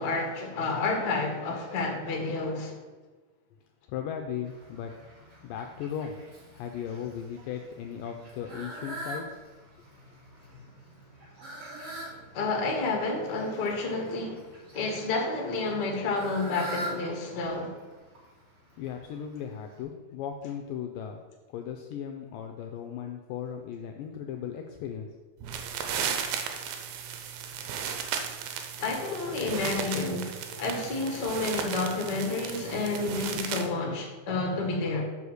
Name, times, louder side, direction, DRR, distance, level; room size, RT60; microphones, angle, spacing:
voice 1, 0.0-2.7 12.3-17.8 28.8-35.0, left 3 dB, 55° left, 0 dB, 1.1 m, -30 dB
voice 2, 3.9-4.9 5.4-6.2 6.5-9.4 18.8-21.2 21.5-25.1, left 8 dB, 85° left, 4 dB, 2.0 m, -37 dB
Fowl, 4.4-19.8, right 1 dB, 40° right, 3.0 m, -45 dB
sound 1, 25.4-33.7, right 7 dB, 85° right, 2.6 m, -35 dB
7.0 x 4.9 x 6.4 m, 1.3 s
omnidirectional pair, 4.4 m